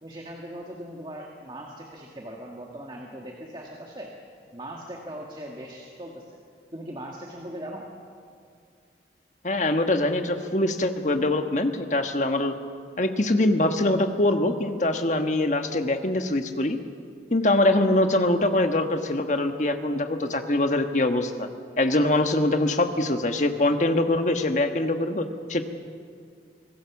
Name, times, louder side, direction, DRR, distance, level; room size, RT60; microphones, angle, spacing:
voice 1, 0.0-4.2 4.5-6.4 6.7-7.9, right 1 dB, 25° right, 0 dB, 1.8 m, -39 dB
voice 2, 9.4-12.6 13.0-16.8 17.3-21.5 21.8-25.6, left 1 dB, 45° left, 6 dB, 1.4 m, -23 dB
25.5 x 18.5 x 7.2 m, 2.2 s
head